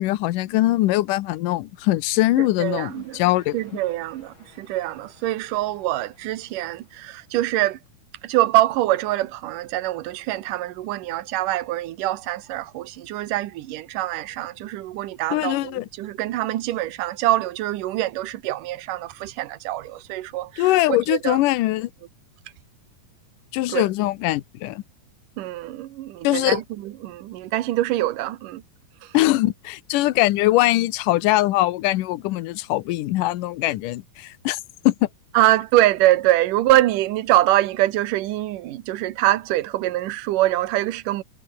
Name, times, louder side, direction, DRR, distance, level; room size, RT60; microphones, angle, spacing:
voice 1, 0.0-3.6 15.3-15.9 20.6-21.9 23.5-24.8 26.2-26.6 29.1-34.6 34.9-35.0, left 17 dB, 75° left, 2.4 m, -21 dB
sound 1, 2.2-7.9, left 2 dB, 35° left, 8.9 m, -56 dB
voice 2, 2.6-3.2 3.5-7.8 8.2-21.4 23.7-23.8 25.4-28.6 35.3-41.2, right 15 dB, 75° right, 2.6 m, -24 dB
omnidirectional pair, 3.9 m